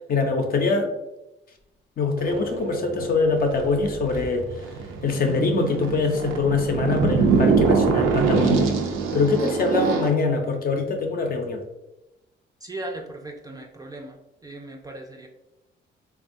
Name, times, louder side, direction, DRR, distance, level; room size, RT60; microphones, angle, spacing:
voice 1, 0.1-0.9 2.0-4.5 5.0-8.7 9.1-11.6, left 4 dB, 50° left, 4 dB, 0.6 m, -23 dB
sound 1, 2.2-10.1, right 5 dB, 85° right, 0.4 m, -24 dB
voice 2, 12.6-15.3, right 2 dB, 20° right, 2 dB, 0.4 m, -37 dB
3.4 x 2.3 x 2.5 m, 0.93 s
cardioid pair, 90°, 20 cm